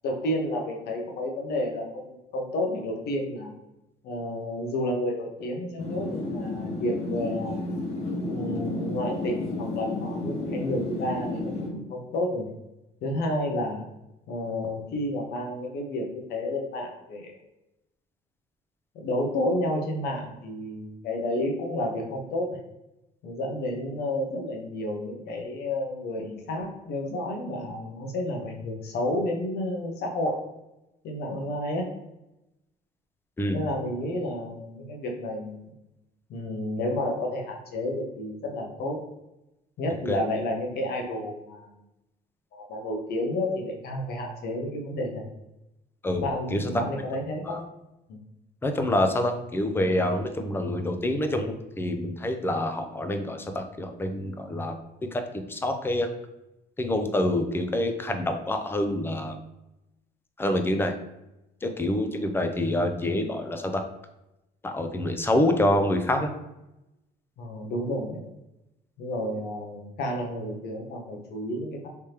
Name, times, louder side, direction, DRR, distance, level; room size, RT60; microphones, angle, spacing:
voice 1, 0.0-3.5 4.0-7.7 8.3-12.5 13.0-13.8 14.3-17.3 18.9-22.5 23.2-30.4 31.0-31.9 33.5-35.7 36.3-39.0 39.8-41.7 42.5-45.2 46.2-47.6 48.1-48.2 67.4-68.3 69.0-71.9, left 1 dB, 75° left, 1 dB, 1.0 m, -31 dB
sound 1, 5.8-11.7, left 2 dB, 40° left, 1.3 m, -32 dB
voice 2, 46.5-46.8 47.5-47.6 48.6-54.8 55.1-56.1 56.8-59.4 60.4-60.9 61.6-63.8 64.6-66.3, left 1 dB, 15° left, 6 dB, 0.5 m, -26 dB
3.4 x 3.3 x 2.8 m, 0.93 s
cardioid pair, 110°, 17 cm